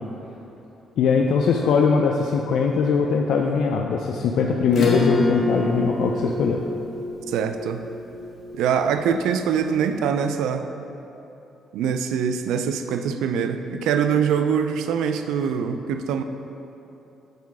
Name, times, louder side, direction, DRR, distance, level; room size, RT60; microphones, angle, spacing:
voice 1, 1.0-6.6, left 5 dB, 75° left, 1 dB, 0.4 m, -21 dB
Acoustic guitar / Strum, 4.7-9.6, left 3 dB, 55° left, 1.3 m, -28 dB
voice 2, 7.3-7.8 8.5-10.7 11.7-16.2, right 7 dB, 90° right, 8 dB, 0.3 m, -23 dB
6.7 x 4.1 x 4.7 m, 3.0 s
cardioid pair, 90°, 0 cm